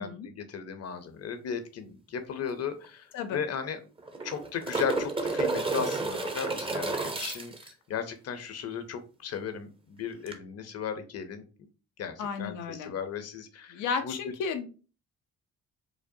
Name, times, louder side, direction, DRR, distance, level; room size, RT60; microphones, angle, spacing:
voice 1, 0.0-3.8 4.2-11.4 12.0-14.2, left 7 dB, 55° left, 9 dB, 0.7 m, -36 dB
sound 1, 2.5-2.6 2.8-2.9 4.0-7.7 10.3-10.4, right 3 dB, 20° right, 0.6 m, -31 dB
voice 2, 12.2-12.9 13.7-14.7, left 5 dB, 90° left, 7 dB, 0.7 m, -33 dB
4.9 x 2.1 x 2.7 m, 0.35 s
cardioid pair, 90°, 30 cm